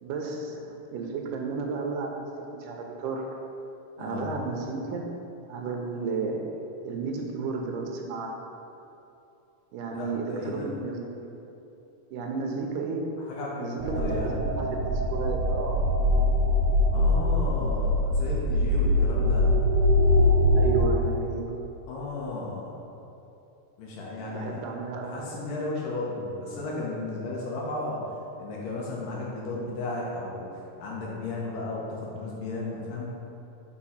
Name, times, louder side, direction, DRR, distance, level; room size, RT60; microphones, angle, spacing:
voice 1, 0.0-3.4 4.0-5.2 5.5-6.5 6.8-8.4 9.7-11.5 12.1-13.0 13.6-15.8 20.5-21.4 24.3-25.2, right 4 dB, 80° right, 2 dB, 2.3 m, -33 dB
voice 2, 4.0-4.3 9.9-10.7 13.2-14.4 16.9-19.5 21.9-22.8 23.8-24.6 25.0-28.0 28.4-33.1, left 2 dB, 85° left, -4 dB, 2.8 m, -34 dB
sound 1, 13.8-20.8, left 1 dB, 55° right, 2.6 m, -23 dB
6.2 x 4.5 x 5.6 m, 2.8 s
omnidirectional pair, 3.8 m